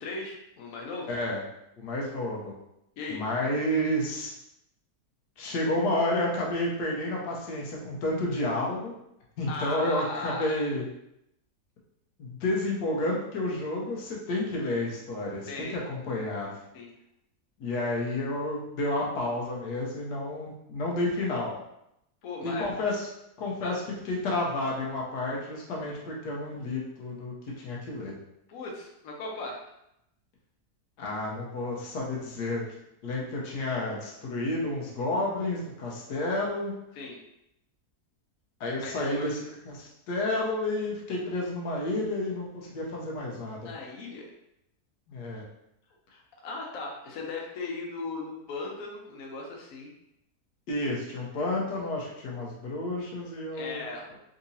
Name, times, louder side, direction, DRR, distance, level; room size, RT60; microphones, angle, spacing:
voice 1, 0.0-1.1 3.0-3.2 9.5-10.5 15.5-15.8 16.7-16.9 22.2-22.7 23.6-23.7 28.5-29.6 36.9-37.2 38.8-39.3 43.6-44.3 46.1-49.9 53.5-54.1, left 3 dB, 65° left, -1 dB, 1.1 m, -37 dB
voice 2, 1.1-1.4 1.8-2.5 3.1-4.3 5.4-8.9 9.4-10.9 12.2-16.5 17.6-21.5 22.4-23.1 23.4-28.1 31.0-32.6 33.0-36.7 38.6-39.4 39.7-43.6 45.1-45.4 50.7-53.8, left 1 dB, 90° left, -2 dB, 1.4 m, -30 dB
3.9 x 2.8 x 2.7 m, 0.81 s
omnidirectional pair, 1.7 m